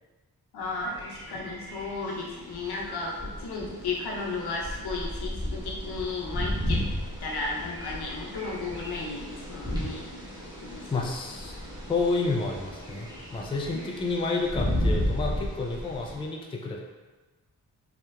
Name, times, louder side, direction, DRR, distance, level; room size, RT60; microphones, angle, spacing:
voice 1, 0.5-6.8 7.2-10.1 10.6-10.9 13.7-13.8, left 3 dB, 75° left, -2 dB, 0.6 m, -34 dB
sound 1, 0.6-16.2, equal, 10° right, 0.9 m, -34 dB
voice 2, 10.9-11.6 11.9-16.8, left 3 dB, 15° left, 0 dB, 0.3 m, -30 dB
2.8 x 2.2 x 2.2 m, 1.2 s
cardioid pair, 45°, 39 cm